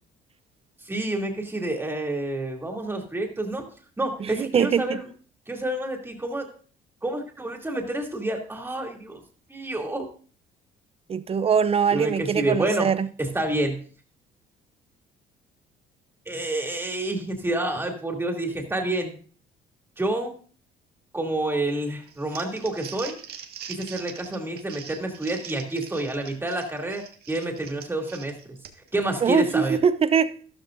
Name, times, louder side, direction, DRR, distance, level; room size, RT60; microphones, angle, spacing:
voice 1, 0.8-3.7 4.0-5.1 5.5-6.5 7.0-9.2 9.5-10.1 11.9-12.9 13.2-13.8 16.3-19.1 20.0-20.3 21.1-23.2 23.7-28.5 28.9-29.8, right 1 dB, 15° right, 2.8 m, -28 dB
voice 2, 4.2-4.9 11.1-13.1 29.2-30.3, right 7 dB, 35° right, 0.6 m, -22 dB
Crumpling crinkling, 22.1-29.0, right 8 dB, 70° right, 1.7 m, -42 dB
13.0 x 13.0 x 2.6 m
cardioid pair, 110°, 17 cm